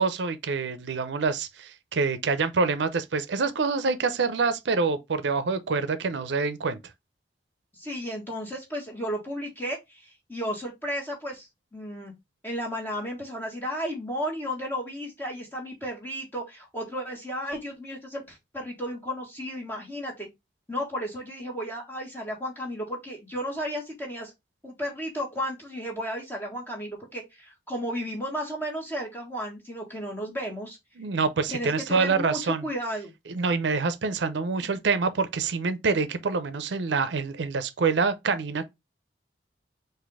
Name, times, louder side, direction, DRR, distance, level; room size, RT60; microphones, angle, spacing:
voice 1, 0.0-6.8 31.0-32.7 33.3-38.7, right 4 dB, 80° right, 0.5 m, -26 dB
voice 2, 7.7-12.1 12.4-20.3 20.7-24.3 24.6-30.8 31.5-33.1 34.6-34.8, equal, 10° left, 1.5 m, -33 dB
4.1 x 2.6 x 4.6 m
head